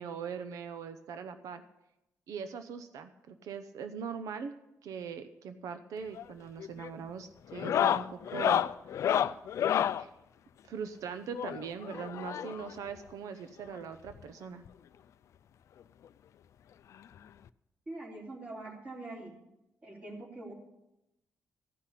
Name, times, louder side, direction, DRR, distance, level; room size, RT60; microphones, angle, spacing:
voice 1, 0.0-1.6 2.3-4.5 4.8-8.6 10.0-10.1 10.7-14.6, right 6 dB, 80° right, 9 dB, 0.8 m, -41 dB
sound 1, 6.0-6.3 6.6-7.0 7.5-10.0 11.3-12.7 13.8-13.9 14.1-14.2 14.7-14.8 16.0-16.1 17.5-17.6, left 10 dB, 60° left, 0.4 m, -30 dB
voice 2, 17.9-19.3 19.8-20.5, right 2 dB, 25° right, 0 dB, 3.2 m, -43 dB
14.5 x 5.8 x 9.9 m, 0.89 s
cardioid pair, 145°, 6 cm